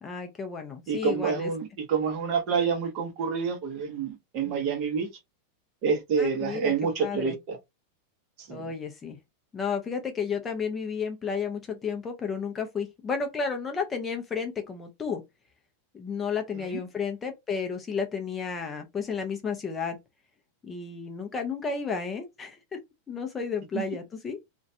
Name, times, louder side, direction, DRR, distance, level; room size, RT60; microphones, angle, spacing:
voice 1, 0.0-1.5 4.5-4.6 6.2-6.7 7.0-7.4 8.5-9.2 9.5-15.2 15.9-20.0 20.6-22.8 23.1-24.4, left 5 dB, 15° left, 0.4 m, -32 dB
voice 2, 0.9-5.1 5.8-7.6 8.4-8.6 16.6-16.8 23.7-23.8, right 6 dB, 40° right, 0.8 m, -28 dB
2.4 x 2.1 x 2.6 m
supercardioid pair, 160°, 0 cm